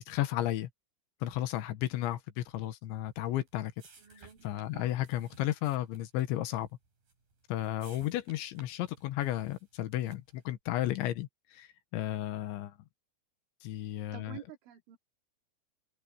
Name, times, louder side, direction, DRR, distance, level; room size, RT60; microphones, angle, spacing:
voice 1, 0.1-0.7 1.2-3.7 4.2-6.7 7.5-12.7 13.6-14.4, left 14 dB, 80° left, 3.6 m, -33 dB
sound 1, 3.0-10.5, right 4 dB, 50° right, 8.2 m, -60 dB
voice 2, 4.0-5.0 14.1-15.0, right 11 dB, 85° right, 5.0 m, -50 dB
omnidirectional pair, 5.3 m